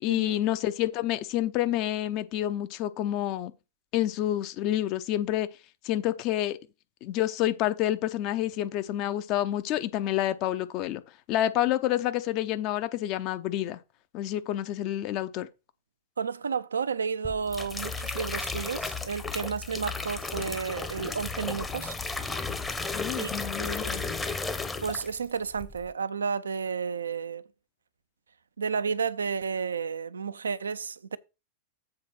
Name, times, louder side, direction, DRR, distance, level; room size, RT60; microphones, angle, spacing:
voice 1, 0.0-3.5 3.9-5.5 5.8-6.6 7.0-11.0 11.3-13.8 14.1-15.5 22.9-24.0, left 13 dB, 40° left, 0.8 m, -28 dB
voice 2, 16.2-22.0 23.1-23.3 23.6-24.0 24.8-27.5 28.6-31.2, right 6 dB, 70° right, 0.5 m, -32 dB
sound 1, 17.2-25.3 25.6-25.9, left 4 dB, 10° left, 0.9 m, -34 dB
7.7 x 4.1 x 6.3 m
figure-of-eight pair, 90°, 0 cm